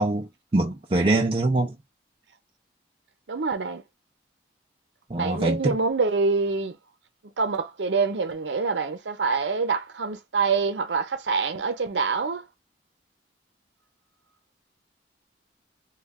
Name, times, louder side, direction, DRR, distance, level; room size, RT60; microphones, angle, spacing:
voice 1, 0.0-1.8 5.1-5.8, right 2 dB, 30° right, 0.4 m, -24 dB
voice 2, 3.3-3.8 5.1-6.8 7.4-12.5, right 4 dB, 90° right, 0.6 m, -25 dB
3.2 x 2.3 x 3.5 m
head